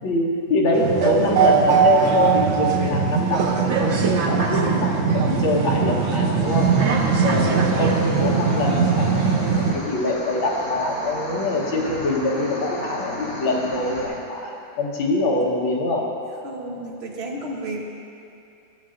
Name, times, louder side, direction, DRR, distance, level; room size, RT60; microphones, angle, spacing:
voice 1, 0.0-6.7 7.2-16.1, left 2 dB, 80° left, -2 dB, 1.9 m, -24 dB
sound 1, 0.7-9.7, right 6 dB, 85° right, 0.6 m, -20 dB
sound 2, 6.4-14.1, left 1 dB, 55° left, 1.9 m, -34 dB
voice 2, 16.4-17.8, right 1 dB, 45° right, -1 dB, 0.9 m, -32 dB
14.5 x 7.5 x 2.5 m, 2.6 s
omnidirectional pair, 2.2 m